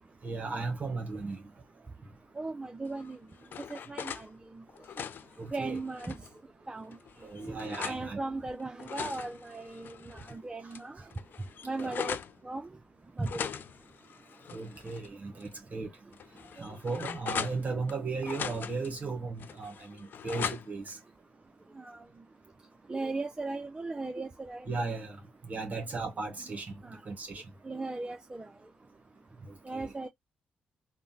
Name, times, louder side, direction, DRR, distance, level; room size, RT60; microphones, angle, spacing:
voice 1, 0.2-1.4 5.4-5.8 7.2-8.2 11.0-11.1 11.7-11.9 14.5-15.9 16.6-21.0 24.7-25.2 25.5-26.7 27.0-27.4 29.5-29.9, right 3 dB, 40° right, 1.0 m, -36 dB
voice 2, 2.4-3.2 3.7-4.6 5.5-6.2 6.7-7.0 7.5-7.6 7.8-11.0 11.6-12.2 12.4-12.7 13.2-13.5 16.6-16.7 21.8-22.0 22.9-24.7 26.8-27.0 27.6-28.5 29.6-30.1, right 3 dB, 20° right, 0.4 m, -37 dB
sound 1, 3.0-4.3 4.7-6.3 6.9-8.0 8.6-10.3 10.7-10.8 11.1-12.3 13.2-15.1 15.4-15.5 16.1-17.9 18.2-18.9 19.4-20.9, left 8 dB, 60° left, 0.3 m, -40 dB
3.5 x 2.0 x 2.6 m
supercardioid pair, 65°, 4 cm